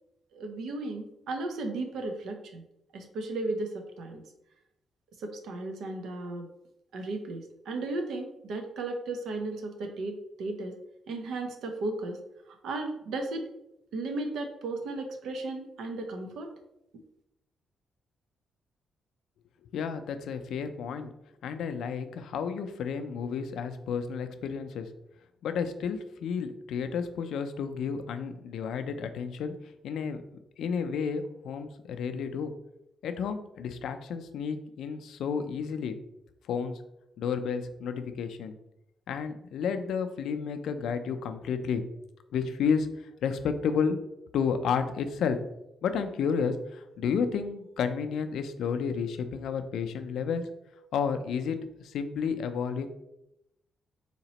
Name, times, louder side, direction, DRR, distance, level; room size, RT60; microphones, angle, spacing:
voice 1, 0.3-2.6 2.9-4.2 5.2-6.5 6.9-10.8 11.1-12.2 12.6-13.4 13.9-16.5, right 2 dB, 80° right, 4 dB, 0.6 m, -35 dB
voice 2, 19.7-21.1 21.4-24.9 25.4-29.5 29.8-30.2 30.6-32.5 33.0-36.0 36.5-36.8 37.2-38.6 39.1-41.8 42.3-42.9 43.2-44.0 44.3-45.4 45.8-50.4 50.9-52.9, left 6 dB, 80° left, 8 dB, 0.3 m, -31 dB
4.0 x 2.9 x 2.9 m, 0.84 s
wide cardioid pair, 175°, 0 cm